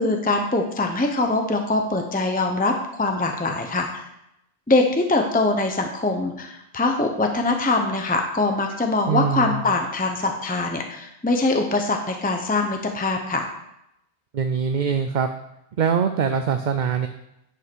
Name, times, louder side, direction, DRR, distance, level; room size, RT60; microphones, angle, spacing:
voice 1, 0.0-4.1 4.7-13.5, left 2 dB, 10° left, 4 dB, 0.8 m, -23 dB
voice 2, 9.1-9.6 14.3-15.3 15.8-17.1, right 6 dB, 55° right, 7 dB, 0.7 m, -23 dB
9.9 x 5.6 x 6.2 m, 0.82 s
omnidirectional pair, 1.1 m